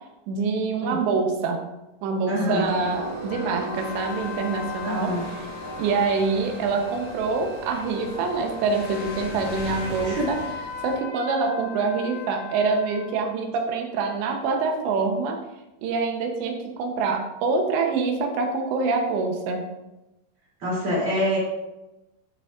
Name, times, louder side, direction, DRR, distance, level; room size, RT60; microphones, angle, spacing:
voice 1, 0.3-1.6 2.0-5.1 5.8-10.4 10.8-15.4 15.8-19.6, right 4 dB, 80° right, 3 dB, 3.2 m, -25 dB
voice 2, 2.3-2.7 4.8-5.2 10.0-10.3 20.6-21.4, equal, 35° right, -6 dB, 3.4 m, -25 dB
Train, 2.6-11.0, right 2 dB, 60° right, 2.0 m, -38 dB
sound 1, 3.3-13.2, left 6 dB, 80° left, 3.5 m, -39 dB
sound 2, 3.7-10.5, left 1 dB, 30° left, 2.9 m, -41 dB
12.5 x 6.2 x 2.5 m, 0.98 s
omnidirectional pair, 5.1 m